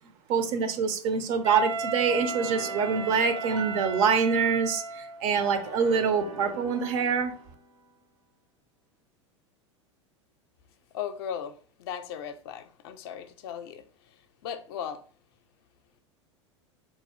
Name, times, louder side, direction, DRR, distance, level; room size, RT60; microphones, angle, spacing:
voice 1, 0.3-7.3, right 6 dB, 45° right, 0.6 m, -25 dB
Wind instrument woodwind instrument, 1.4-5.3, right 3 dB, 85° right, 0.7 m, -35 dB
sound 1, 2.1-4.7 5.3-7.8, right 2 dB, 70° right, 1.2 m, -41 dB
voice 2, 10.9-13.8 14.4-15.0, left 8 dB, 55° left, 0.5 m, -37 dB
4.1 x 2.7 x 3.1 m
figure-of-eight pair, 80°, 16 cm